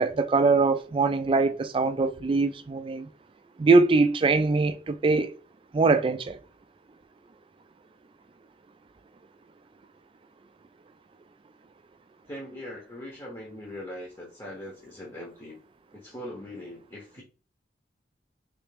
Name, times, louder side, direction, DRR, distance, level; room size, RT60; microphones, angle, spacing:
voice 1, 0.0-3.1 3.6-5.3 5.7-6.4, right 3 dB, 30° right, 0.3 m, -22 dB
voice 2, 12.3-15.6 15.9-17.2, left 1 dB, 20° left, 0.8 m, -41 dB
3.3 x 3.1 x 3.3 m
head